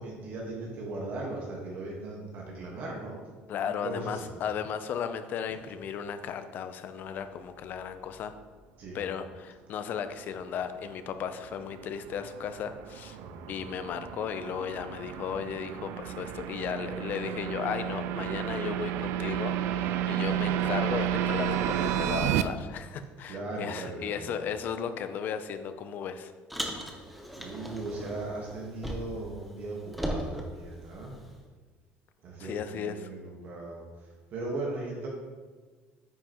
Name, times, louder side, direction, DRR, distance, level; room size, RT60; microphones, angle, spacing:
voice 1, 0.0-3.2 3.6-4.3 8.8-9.0 13.1-13.7 23.3-24.4 27.3-31.1 32.2-33.8 34.3-35.1, right 2 dB, 45° right, -2 dB, 1.4 m, -38 dB
voice 2, 3.5-8.3 8.9-13.2 13.5-26.3 32.4-33.1, left 7 dB, 45° left, 10 dB, 0.5 m, -35 dB
sound 1, 10.9-22.4, right 11 dB, 70° right, 0.4 m, -32 dB
Car, 26.5-29.3 29.6-31.4, equal, ahead, 0.8 m, -37 dB
9.3 x 5.7 x 3.0 m, 1.4 s
cardioid pair, 150°, 4 cm